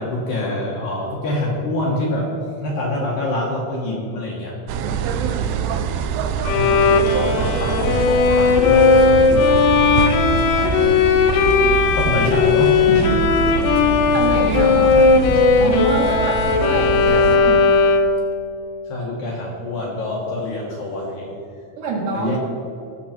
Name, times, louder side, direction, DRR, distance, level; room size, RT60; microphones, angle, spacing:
voice 1, 0.0-2.3 2.6-4.6 6.5-9.7 11.7-13.3 18.8-21.3 22.1-22.4, left 1 dB, 60° left, -4 dB, 2.6 m, -26 dB
sound 1, 4.7-17.4, right 6 dB, 80° right, 2.6 m, -24 dB
Bowed string instrument, 6.4-18.3, left 4 dB, 85° left, 2.4 m, -16 dB
voice 2, 14.1-15.0 15.6-17.7 21.8-22.4, right 3 dB, 60° right, -2 dB, 3.4 m, -25 dB
19.0 x 7.1 x 4.4 m, 2.6 s
omnidirectional pair, 5.6 m